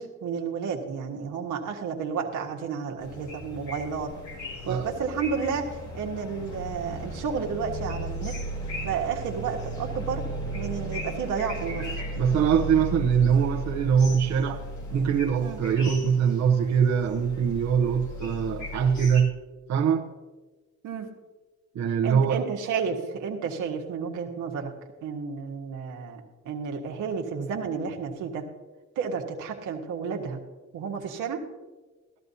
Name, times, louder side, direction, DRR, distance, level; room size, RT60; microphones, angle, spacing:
voice 1, 0.0-4.1 4.6-8.4 8.8-10.2 10.5-12.0 15.4-15.6 20.8-21.1 22.0-24.7 25.0-26.2 26.4-28.5 28.9-30.4 30.7-31.4, right 6 dB, 85° right, 1.4 m, -31 dB
sound 1, 3.0-19.2, equal, 70° left, 2.3 m, -36 dB
voice 2, 12.1-14.6 14.9-19.4 19.7-20.1 21.7-22.4, right 7 dB, 60° right, 0.9 m, -23 dB
13.5 x 13.0 x 2.8 m
cardioid pair, 90°, 30 cm